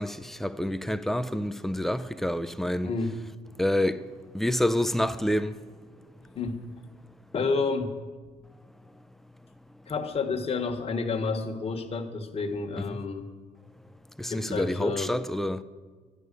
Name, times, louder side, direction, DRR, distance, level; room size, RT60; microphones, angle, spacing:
voice 1, 0.0-2.9 3.6-4.0 4.3-5.6 12.9-13.0 14.2-15.6, left 1 dB, ahead, 0.5 m, -28 dB
voice 2, 2.8-3.2 6.3-6.7 7.3-8.0 9.9-13.3 14.3-15.1, left 4 dB, 35° left, 1.5 m, -30 dB
11.0 x 10.5 x 6.8 m
cardioid pair, 110°, 17 cm